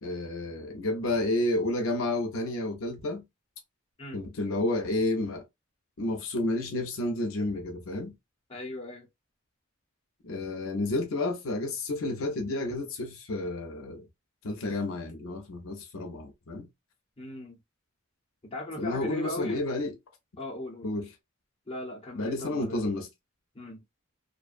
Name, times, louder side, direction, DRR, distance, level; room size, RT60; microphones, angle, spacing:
voice 1, 0.0-3.2 4.1-5.4 6.0-8.1 10.2-14.0 14.4-16.7 18.8-19.9 20.8-21.1 22.2-23.1, left 2 dB, 75° left, 0.6 m, -30 dB
voice 2, 8.5-9.1 17.2-17.6 18.5-19.7 20.4-20.9 21.7-22.8 23.5-23.8, left 2 dB, 30° left, 0.9 m, -37 dB
2.5 x 2.2 x 2.4 m
head